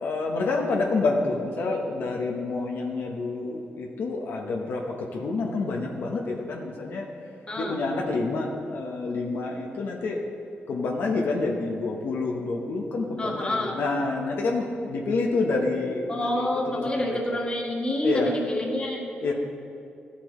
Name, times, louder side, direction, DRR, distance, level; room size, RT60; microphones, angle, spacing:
voice 1, 0.0-7.1 7.6-10.2 10.7-17.4 18.0-18.4 19.2-19.3, left 3 dB, 75° left, 0 dB, 1.0 m, -28 dB
voice 2, 7.5-7.8 13.2-13.8 16.1-19.0, left 1 dB, 25° left, -1 dB, 1.7 m, -28 dB
14.0 x 8.4 x 3.2 m, 2.5 s
cardioid pair, 100°, 4 cm